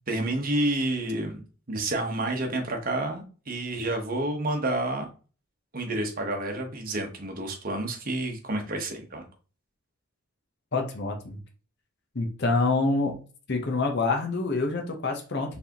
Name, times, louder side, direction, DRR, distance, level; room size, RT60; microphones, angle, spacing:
voice 1, 0.1-1.4 1.7-5.1 5.7-9.2, right 1 dB, 40° right, 3 dB, 1.0 m, -29 dB
voice 2, 10.7-11.4 12.1-13.2 13.5-15.6, left 3 dB, 50° left, 2 dB, 0.9 m, -26 dB
4.6 x 3.5 x 2.9 m, 0.37 s
head